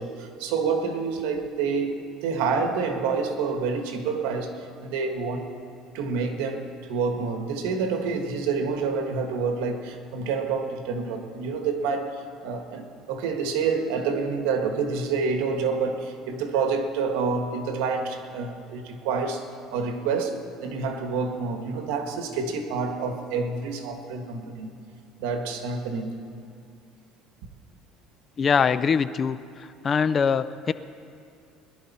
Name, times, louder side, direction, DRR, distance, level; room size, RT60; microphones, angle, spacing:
voice 1, 0.0-5.5 5.9-24.7 25.2-26.2, right 5 dB, 90° right, 1.5 m, -28 dB
voice 2, 28.4-29.4 29.8-30.7, left 6 dB, 30° left, 0.4 m, -22 dB
21.5 x 11.5 x 4.2 m
cardioid pair, 145°, 0 cm